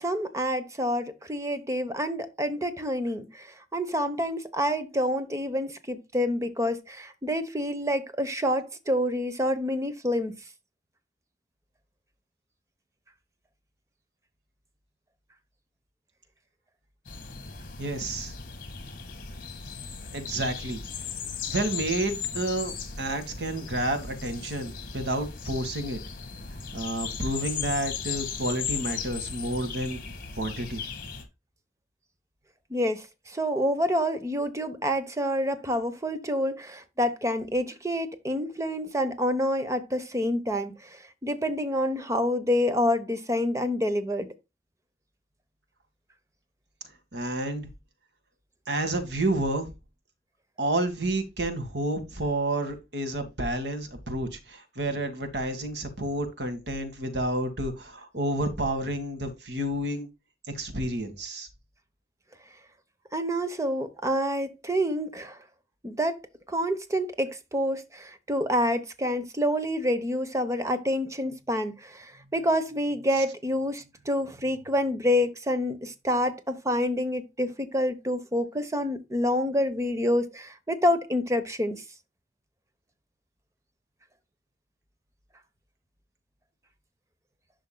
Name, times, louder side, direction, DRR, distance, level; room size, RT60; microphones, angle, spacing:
voice 1, 0.0-3.5 3.7-10.3 32.7-33.0 33.3-40.7 41.2-44.3 63.1-65.3 65.8-66.2 66.5-81.8, equal, 15° right, 1.0 m, -27 dB
sound 1, 17.0-31.2, left 6 dB, 50° left, 2.1 m, -37 dB
voice 2, 17.8-18.3 20.1-20.8 21.5-26.0 26.7-30.0 30.4-30.8 47.1-47.7 48.7-49.7 50.6-60.1 60.5-61.5 73.1-73.2, right 1 dB, 70° right, 2.0 m, -30 dB
10.5 x 6.3 x 2.3 m
head